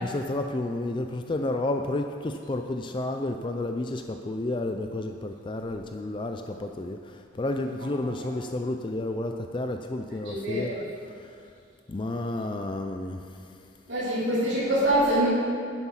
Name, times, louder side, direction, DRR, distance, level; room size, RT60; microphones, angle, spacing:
voice 1, 0.0-10.8 11.9-13.2, left 2 dB, 25° left, 5 dB, 0.4 m, -31 dB
voice 2, 10.2-10.8 13.9-15.3, right 1 dB, 60° right, -11 dB, 3.0 m, -25 dB
10.5 x 7.9 x 5.7 m, 2.3 s
head